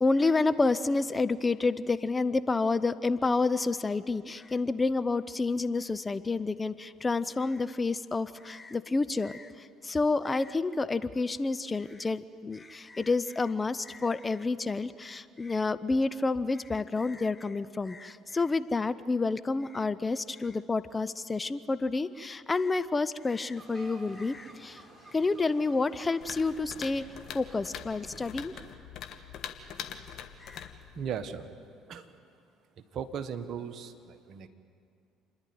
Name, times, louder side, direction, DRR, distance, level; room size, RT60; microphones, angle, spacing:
voice 1, 0.0-24.8 25.1-27.0 27.3-28.5 30.4-30.7, left 3 dB, 25° left, 14 dB, 0.7 m, -29 dB
sound 1, 23.5-28.7, right 1 dB, 20° right, 4.2 m, -53 dB
sound 2, 26.2-31.4, left 8 dB, 55° left, 1.4 m, -43 dB
voice 2, 30.9-31.5 31.9-32.1 32.9-34.5, right 7 dB, 55° right, 9 dB, 1.4 m, -37 dB
28.5 x 11.0 x 9.4 m, 2.4 s
hypercardioid pair, 60°, 0 cm